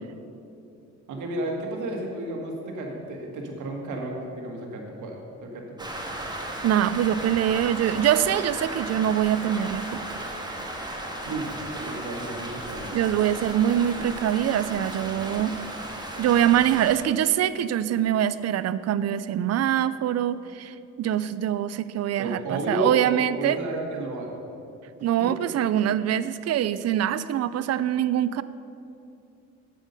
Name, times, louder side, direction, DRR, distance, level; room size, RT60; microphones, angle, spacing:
voice 1, 1.1-5.9 11.2-12.9 22.2-24.4 25.2-25.3, right 1 dB, 75° right, 1 dB, 1.9 m, -32 dB
Rain, 5.8-17.0, right 1 dB, 15° right, 1.5 m, -35 dB
voice 2, 6.6-10.0 12.9-15.6 16.2-23.6 25.0-28.4, right 11 dB, 55° right, 15 dB, 0.5 m, -24 dB
9.0 x 8.2 x 5.4 m, 2.6 s
cardioid pair, 90°, 30 cm